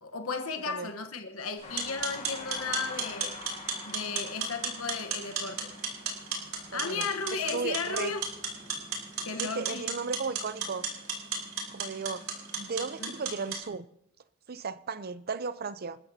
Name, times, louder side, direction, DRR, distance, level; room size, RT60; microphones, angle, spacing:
voice 1, 0.0-3.4 3.8-5.7 6.7-8.2 9.3-9.8 13.0-13.1, left 5 dB, 80° left, 1.1 m, -35 dB
sound 1, 1.6-9.5, left 4 dB, 30° left, 1.3 m, -48 dB
sound 2, 1.6-13.6, right 5 dB, 70° right, 4.2 m, -36 dB
voice 2, 6.7-8.1 9.4-10.9 11.7-12.3 12.6-13.9 14.5-16.0, right 4 dB, 45° right, 0.6 m, -35 dB
27.5 x 13.0 x 2.8 m
head